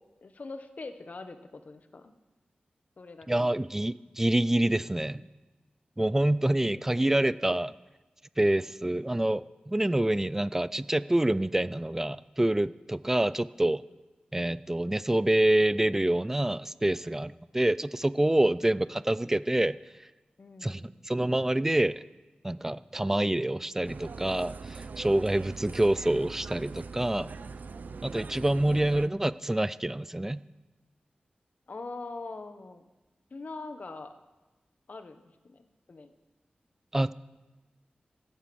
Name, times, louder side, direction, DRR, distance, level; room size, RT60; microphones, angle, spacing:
voice 1, 0.2-2.1 3.0-3.5 6.7-7.1 20.4-21.0 31.7-32.8 33.3-34.1 34.9-36.1, left 3 dB, 55° left, 8 dB, 1.0 m, -43 dB
voice 2, 3.3-5.2 6.0-7.7 8.4-13.8 14.3-19.8 20.6-22.0 22.4-27.3 28.0-30.4 36.9-37.1, right 1 dB, 15° right, 17 dB, 0.3 m, -27 dB
sound 1, 23.8-29.1, right 4 dB, 70° right, 0.5 m, -42 dB
15.0 x 9.0 x 6.2 m, 1.2 s
wide cardioid pair, 95°, 3 cm